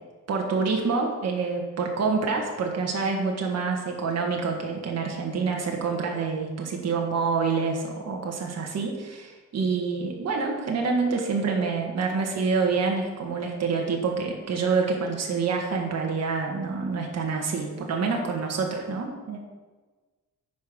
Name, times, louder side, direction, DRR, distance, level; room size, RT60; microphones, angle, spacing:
voice 1, 0.3-19.4, right 4 dB, 50° right, 1 dB, 1.6 m, -27 dB
9.3 x 5.2 x 6.2 m, 1.3 s
cardioid pair, 135°, 34 cm